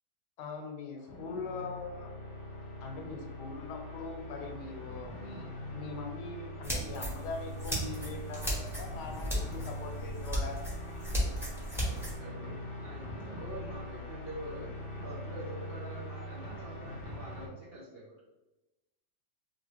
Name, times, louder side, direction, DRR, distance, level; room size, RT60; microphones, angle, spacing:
voice 1, 0.4-2.1 2.8-10.6, left 4 dB, 80° left, 3 dB, 1.2 m, -42 dB
sound 1, 1.0-17.5, left 1 dB, 55° left, 0.9 m, -42 dB
sound 2, 6.6-12.1, equal, 5° right, 0.5 m, -35 dB
voice 2, 11.8-18.2, right 1 dB, 75° right, -7 dB, 0.5 m, -46 dB
3.0 x 2.8 x 2.9 m, 1.0 s
omnidirectional pair, 1.8 m